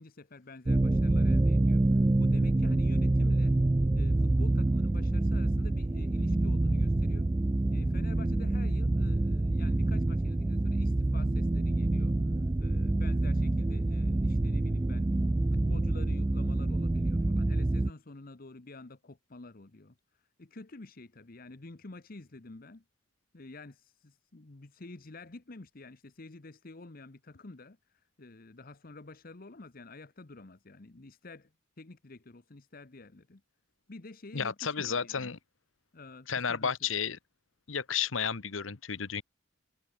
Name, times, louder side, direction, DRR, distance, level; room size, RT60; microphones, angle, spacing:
voice 1, 0.0-3.6 3.9-7.3 7.7-15.2 15.5-20.0 20.4-22.8 23.3-31.5 31.8-33.4 33.9-35.3 35.9-36.7, left 2 dB, 45° left, 1.0 m, -49 dB
sound 1, 0.6-17.9, right 2 dB, 15° right, 0.3 m, -27 dB
voice 2, 34.3-35.4 36.3-37.2 37.7-39.2, left 7 dB, 85° left, 1.1 m, -32 dB
head